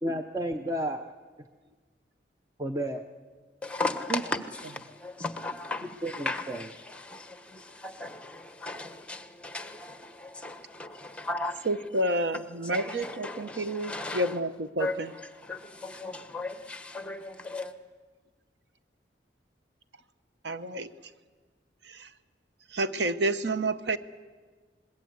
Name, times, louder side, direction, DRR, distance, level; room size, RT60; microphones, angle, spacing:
voice 1, 0.0-1.1 2.6-3.0 4.1-4.2 6.0-6.6, right 1 dB, 20° right, 0.8 m, -31 dB
voice 2, 3.6-12.5 12.7-14.4 14.8-17.7, left 2 dB, 5° left, 1.3 m, -37 dB
voice 3, 11.7-14.9 20.4-20.9 21.8-22.1 22.7-24.0, right 1 dB, 70° right, 0.9 m, -29 dB
26.0 x 21.5 x 8.1 m
head